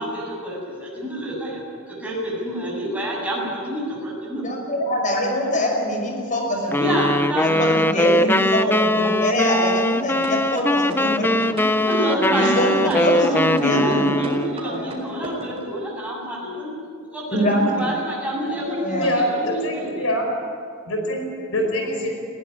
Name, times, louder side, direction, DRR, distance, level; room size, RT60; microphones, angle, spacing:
voice 1, 0.0-4.5 6.8-7.7 8.5-9.1 11.7-16.7 17.1-20.1, right 1 dB, 5° right, -5 dB, 7.7 m, -27 dB
voice 2, 4.4-6.9 7.4-11.4 12.3-14.1 14.6-14.9 17.3-17.9 18.8-19.1, equal, 40° left, 1 dB, 5.8 m, -24 dB
sound 1, 6.7-14.6, left 1 dB, 10° left, 0.5 m, -21 dB
sound 2, 10.2-15.6, right 1 dB, 30° right, 4.5 m, -32 dB
voice 3, 18.6-20.2 20.9-21.2 21.5-22.1, left 1 dB, 75° left, 2 dB, 4.9 m, -24 dB
20.5 x 16.5 x 9.8 m, 2.2 s
head